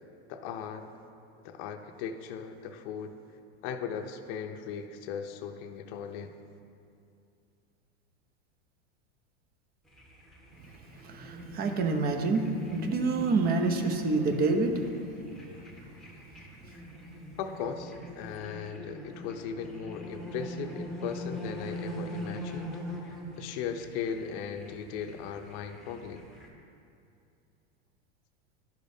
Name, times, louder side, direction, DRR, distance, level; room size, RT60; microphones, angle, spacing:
voice 1, 0.3-0.9 1.4-3.1 3.6-6.3 15.8-16.0 17.4-22.8 23.0-26.3, left 7 dB, 45° left, 5 dB, 0.6 m, -38 dB
sound 1, 9.9-26.5, equal, ahead, 1.1 m, -42 dB
voice 2, 11.0-14.9, right 3 dB, 30° right, 6 dB, 0.7 m, -27 dB
12.5 x 5.0 x 2.7 m, 2.5 s
supercardioid pair, 135°, 34 cm